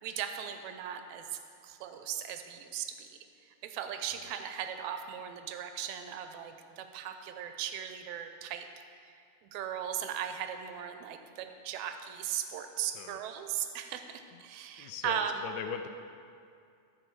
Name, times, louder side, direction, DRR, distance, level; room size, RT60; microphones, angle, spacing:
voice 1, 0.0-3.2 3.6-8.7 9.0-9.1 9.4-15.5, right 9 dB, 80° right, 7 dB, 1.9 m, -38 dB
voice 2, 14.8-15.9, left 7 dB, 80° left, 6 dB, 1.8 m, -39 dB
14.0 x 5.0 x 4.6 m, 2.4 s
omnidirectional pair, 3.4 m